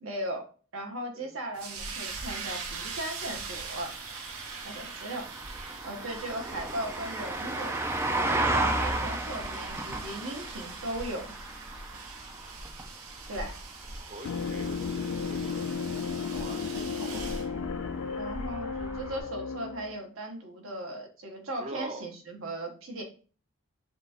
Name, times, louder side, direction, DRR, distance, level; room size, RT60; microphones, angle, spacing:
voice 1, 0.0-4.0 4.6-5.3 5.8-7.7 8.3-11.3 13.3-13.6 18.2-23.0, right 1 dB, 65° right, 2 dB, 1.0 m, -37 dB
sound 1, 1.5-17.5, right 5 dB, 85° right, 0.8 m, -43 dB
sound 2, 1.8-19.2, right 2 dB, 10° right, 0.3 m, -35 dB
voice 2, 6.4-6.8 9.1-9.8 14.0-17.6 21.6-22.0, right 1 dB, 30° right, 3 dB, 0.8 m, -46 dB
sound 3, 14.2-20.0, left 5 dB, 70° left, 0.3 m, -34 dB
5.6 x 2.4 x 2.8 m, 0.38 s
head